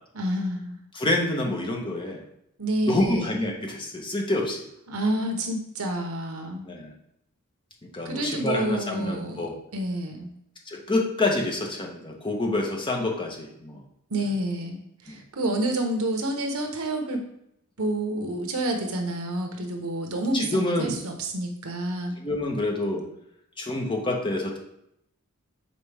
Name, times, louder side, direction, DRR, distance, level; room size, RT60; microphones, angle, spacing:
voice 1, 0.1-0.8 2.6-3.4 4.9-6.7 8.0-9.5 9.7-10.3 14.1-17.2 17.8-22.1, right 1 dB, 75° right, 3 dB, 1.1 m, -29 dB
voice 2, 0.9-2.2 2.8-4.7 6.6-6.9 7.9-9.5 10.7-13.8 15.1-15.2 20.3-21.0 22.2-23.0 23.6-24.6, left 2 dB, 25° left, 1 dB, 1.0 m, -27 dB
6.5 x 4.2 x 3.4 m, 0.77 s
head